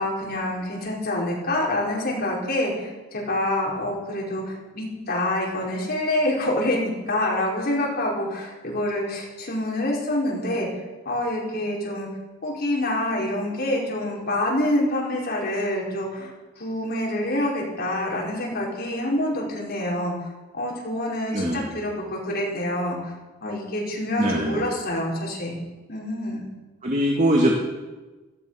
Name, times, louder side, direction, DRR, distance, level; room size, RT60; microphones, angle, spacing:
voice 1, 0.0-10.7 11.0-12.1 12.4-16.3 16.6-20.1 20.5-23.1 23.4-25.5 25.9-26.5, left 1 dB, 55° left, -3 dB, 5.0 m, -26 dB
voice 2, 21.3-21.7 24.2-24.7 26.8-27.5, right 1 dB, 40° right, -1 dB, 2.2 m, -22 dB
16.5 x 13.5 x 5.8 m, 1.2 s
head